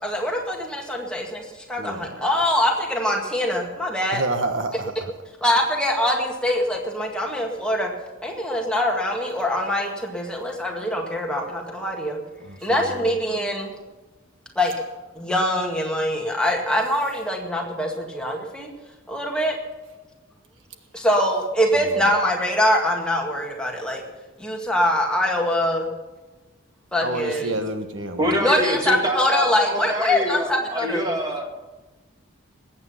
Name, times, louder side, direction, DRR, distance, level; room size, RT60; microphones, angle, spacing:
voice 1, 0.0-4.2 5.4-7.9 8.2-12.2 12.6-13.7 14.6-14.7 15.2-18.7 19.1-19.6 20.9-24.0 24.4-25.9 26.9-27.5 28.4-31.1, left 1 dB, 5° left, 0 dB, 2.0 m, -23 dB
voice 2, 1.8-2.2 4.1-4.9 12.4-13.1 27.0-28.4, right 2 dB, 75° right, 6 dB, 1.4 m, -29 dB
voice 3, 28.2-31.6, equal, 20° right, 1 dB, 2.1 m, -25 dB
20.5 x 8.8 x 5.7 m, 1.1 s
head